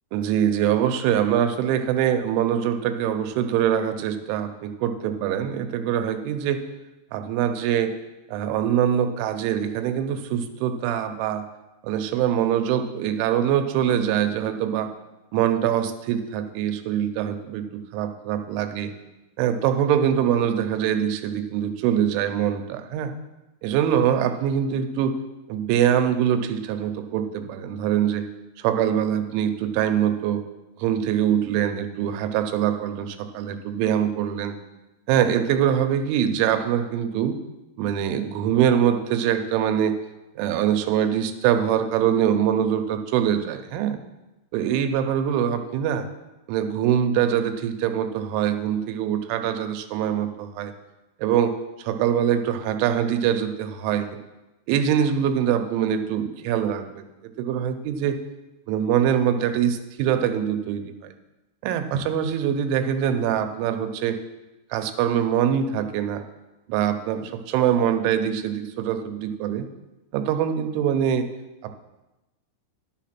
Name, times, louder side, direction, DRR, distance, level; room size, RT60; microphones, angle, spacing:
voice 1, 0.1-6.6 7.1-7.9 8.3-11.4 11.8-14.9 15.3-18.9 19.4-23.1 23.6-25.2 25.5-28.2 28.6-30.4 30.8-34.6 35.1-37.4 37.8-39.9 40.4-44.0 44.5-46.1 46.5-50.7 51.2-51.5 51.8-54.2 54.7-57.1 57.4-58.2 58.7-61.1 61.6-64.2 64.7-66.2 66.7-69.7 70.1-71.3 71.6-71.7, right 9 dB, 90° right, 7 dB, 3.2 m, -23 dB
11.0 x 6.9 x 5.9 m, 1.0 s
omnidirectional pair, 5.4 m